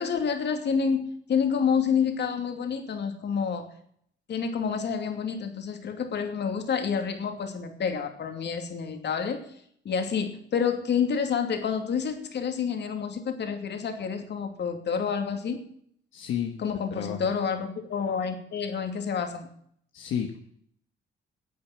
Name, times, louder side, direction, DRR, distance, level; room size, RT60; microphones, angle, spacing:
voice 1, 0.0-3.7 4.3-9.5 9.8-15.6 16.6-19.5, left 6 dB, 60° left, 5 dB, 2.7 m, -28 dB
voice 2, 16.1-16.6 17.0-17.3 19.9-20.4, left 9 dB, 80° left, 2 dB, 1.5 m, -31 dB
11.0 x 8.8 x 8.9 m, 0.65 s
cardioid pair, 90°, 20 cm